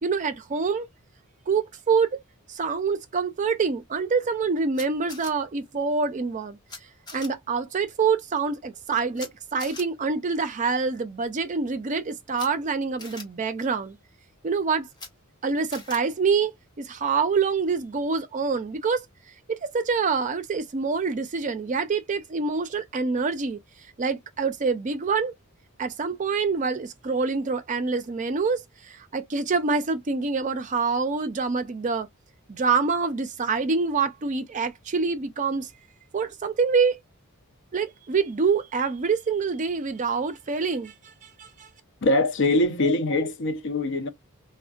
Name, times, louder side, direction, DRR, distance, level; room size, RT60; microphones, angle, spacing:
voice 1, 0.0-0.9 1.5-2.2 2.5-6.6 7.1-14.0 14.4-14.9 15.4-16.5 16.8-19.1 19.5-23.6 24.0-25.3 25.8-32.1 32.5-35.7 36.1-37.0 37.7-40.9 41.4-41.7, right 5 dB, 35° right, 0.4 m, -26 dB
Camera, 4.7-5.3 6.7-6.8 7.1-7.3 9.1-9.3 9.6-9.8 12.3-12.5 13.0-13.2 14.9-15.1 15.7-16.0, left 3 dB, 20° left, 1.1 m, -40 dB
voice 2, 42.0-44.1, left 2 dB, 55° left, 0.6 m, -23 dB
3.5 x 2.1 x 2.3 m
head